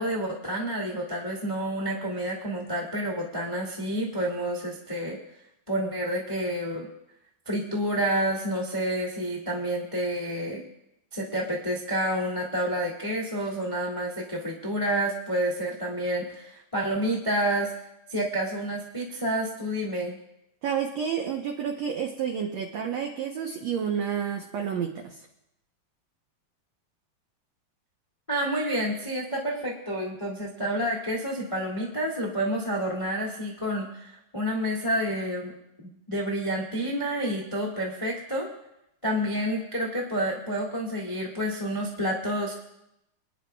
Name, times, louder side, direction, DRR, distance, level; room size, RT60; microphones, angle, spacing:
voice 1, 0.0-5.2 5.7-6.9 7.4-10.6 11.1-17.7 18.1-20.2 28.3-35.5 36.1-38.5 39.0-42.6, right 1 dB, 30° left, -2 dB, 0.5 m, -29 dB
voice 2, 20.6-25.2, right 7 dB, 80° right, 2 dB, 1.5 m, -30 dB
26.5 x 9.9 x 2.3 m, 0.85 s
omnidirectional pair, 4.2 m